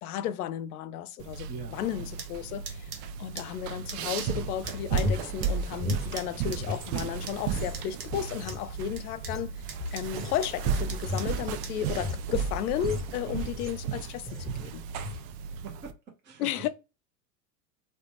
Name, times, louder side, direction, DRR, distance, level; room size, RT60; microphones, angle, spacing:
voice 1, 0.0-9.6 9.9-14.9 16.4-16.7, left 11 dB, 65° left, 0.5 m, -34 dB
sound 1, 1.2-15.9, right 7 dB, 40° right, 0.4 m, -34 dB
voice 2, 1.5-1.8 13.3-13.5 15.1-15.4 15.6-16.7, right 6 dB, 25° right, 0.8 m, -44 dB
sound 2, 2.1-11.9, right 6 dB, 85° right, 0.9 m, -46 dB
sound 3, 4.6-6.9 7.2-13.9 14.3-14.6 14.9-15.3, left 2 dB, ahead, 1.0 m, -36 dB
3.2 x 2.2 x 2.9 m
hypercardioid pair, 90°, 48 cm